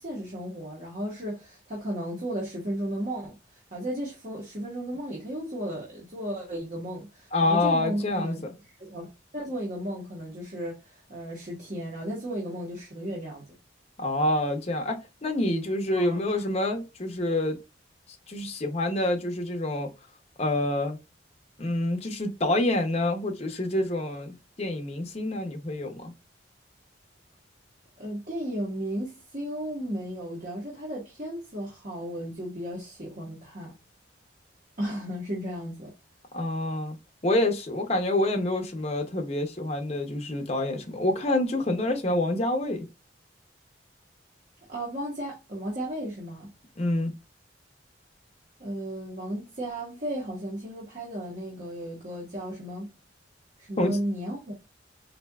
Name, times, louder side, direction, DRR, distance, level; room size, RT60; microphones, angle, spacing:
voice 1, 0.0-8.4 8.8-9.1 9.3-13.4 15.9-16.4 28.0-33.7 34.8-35.9 44.7-46.5 48.6-52.9 53.6-54.5, right 1 dB, 45° right, 1.1 m, -34 dB
voice 2, 7.3-8.5 14.0-17.6 18.3-19.9 20.4-21.0 21.6-26.1 36.3-37.0 37.2-42.9 46.8-47.1 53.8-54.0, left 1 dB, 35° left, 0.6 m, -27 dB
4.2 x 2.7 x 2.3 m
head